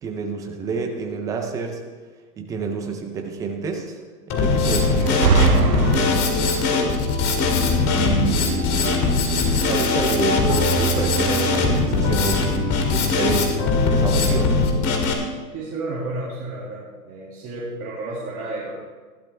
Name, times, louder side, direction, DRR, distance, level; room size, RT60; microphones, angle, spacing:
voice 1, 0.0-1.8 2.4-4.0 4.3-7.1 7.9-9.3 9.7-13.6 13.9-14.6, right 5 dB, 10° right, 3 dB, 0.4 m, -28 dB
Drum kit, 4.3-15.1, left 3 dB, 30° left, 2.0 m, -20 dB
sound 1, 5.0-6.6, right 5 dB, 80° right, 1.3 m, -20 dB
voice 2, 15.5-18.7, right 2 dB, 25° right, -5 dB, 2.1 m, -31 dB
15.0 x 12.0 x 3.3 m, 1.4 s
hypercardioid pair, 125°, 48 cm